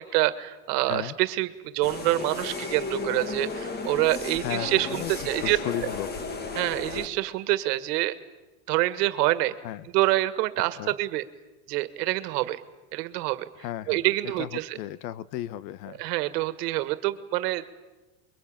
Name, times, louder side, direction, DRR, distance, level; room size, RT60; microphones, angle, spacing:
voice 1, 0.0-5.6 6.6-8.1 8.7-9.5 9.9-11.2 11.7-12.6 12.9-13.5 13.9-14.8 16.0-17.6, right 17 dB, 80° right, 12 dB, 1.8 m, -26 dB
sound 1, 1.8-7.1, left 3 dB, 20° left, 1.4 m, -34 dB
voice 2, 4.3-6.1 9.6-9.9 10.8-10.9 13.6-14.0 14.4-16.0, left 13 dB, 90° left, 17 dB, 1.0 m, -35 dB
29.5 x 23.0 x 8.8 m, 1.2 s
cardioid pair, 170°, 48 cm